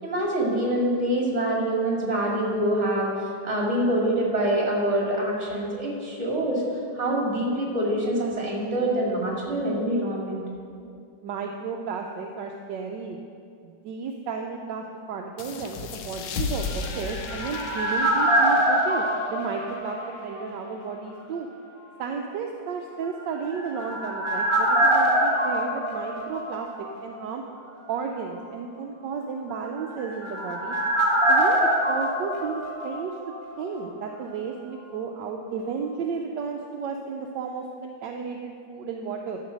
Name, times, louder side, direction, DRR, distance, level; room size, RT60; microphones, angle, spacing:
voice 1, 0.0-6.6 6.9-10.4, right 1 dB, 40° right, -3 dB, 2.5 m, -25 dB
voice 2, 11.2-13.2 13.6-21.5 22.0-27.4 27.9-30.8 31.3-31.6 31.9-33.1 33.6-39.4, right 5 dB, 75° right, 2 dB, 1.3 m, -33 dB
sound 1, 15.4-20.6, left 5 dB, 75° left, 1.4 m, -36 dB
sound 2, 16.7-20.6 20.8-20.9 23.3-27.0 27.3-27.4 29.7-33.5 33.8-33.9, right 1 dB, 20° right, 1.2 m, -24 dB
12.5 x 5.2 x 6.2 m, 2.5 s
omnidirectional pair, 2.0 m